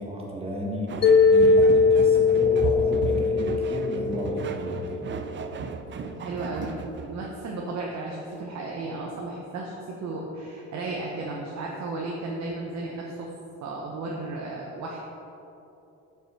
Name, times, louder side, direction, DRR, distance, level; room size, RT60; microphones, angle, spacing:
voice 1, 0.0-5.0, equal, 20° right, -3 dB, 1.7 m, -33 dB
sound 1, 0.9-7.4, right 5 dB, 40° right, 0.5 m, -35 dB
Mallet percussion, 1.0-5.2, left 4 dB, 35° left, 0.5 m, -20 dB
voice 2, 6.0-13.3 13.6-15.0, right 2 dB, 65° right, -2 dB, 1.0 m, -34 dB
7.0 x 5.8 x 4.5 m, 3.0 s
cardioid pair, 90°, 30 cm